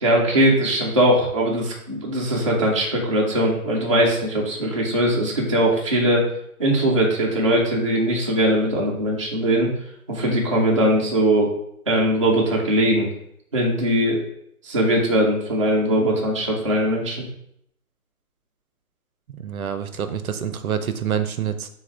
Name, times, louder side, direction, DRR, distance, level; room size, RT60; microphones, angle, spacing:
voice 1, 0.0-6.2 6.6-9.7 10.1-11.5 11.9-13.1 13.5-14.2 14.6-17.2, right 1 dB, 20° right, -4 dB, 0.5 m, -20 dB
voice 2, 19.3-21.7, right 8 dB, 70° right, 10 dB, 0.6 m, -27 dB
6.6 x 2.4 x 3.4 m, 0.72 s
hypercardioid pair, 155°, 45 cm